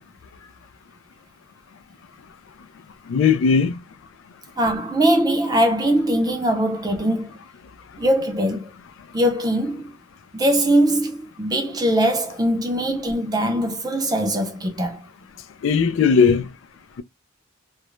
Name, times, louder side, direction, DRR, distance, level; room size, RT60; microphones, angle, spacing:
voice 1, 3.1-3.7 15.6-16.5, left 6 dB, 75° left, 0.3 m, -17 dB
voice 2, 4.6-7.4 8.0-8.7 9.1-9.9 10.3-15.1, right 1 dB, 20° right, 0.5 m, -21 dB
2.4 x 2.0 x 3.0 m
head